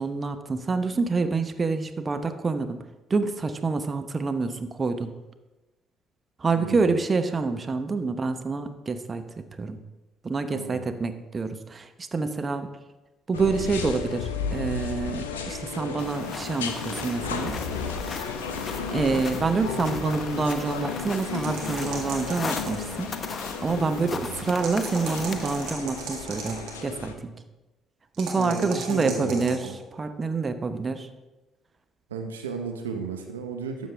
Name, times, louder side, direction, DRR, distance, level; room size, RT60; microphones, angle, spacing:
voice 1, 0.0-2.8 3.1-5.2 6.4-9.8 10.2-12.7 13.3-17.6 18.9-23.2 23.6-27.3 28.2-29.6 30.0-31.1, right 4 dB, 35° right, 8 dB, 0.9 m, -27 dB
voice 2, 6.5-7.0 10.5-11.0 24.0-24.5 28.4-29.8 32.1-33.9, right 5 dB, 85° right, 4 dB, 0.7 m, -34 dB
sound 1, 13.3-27.1, left 5 dB, 85° left, 0.6 m, -34 dB
sound 2, 16.0-25.7, left 4 dB, 40° left, 0.8 m, -37 dB
sound 3, 21.1-23.0 24.4-26.8 28.1-29.7, right 5 dB, 70° right, 1.9 m, -37 dB
12.5 x 7.4 x 3.4 m, 1.1 s
hypercardioid pair, 50°, 0 cm